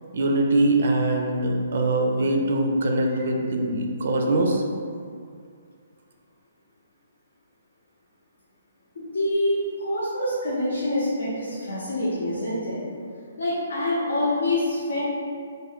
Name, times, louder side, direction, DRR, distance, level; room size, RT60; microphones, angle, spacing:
voice 1, 0.1-4.6, right 2 dB, 65° right, 2 dB, 0.4 m, -22 dB
voice 2, 9.0-12.8 13.4-15.0, left 1 dB, 75° left, -9 dB, 0.7 m, -26 dB
2.4 x 2.1 x 3.5 m, 2.2 s
hypercardioid pair, 140°, 0 cm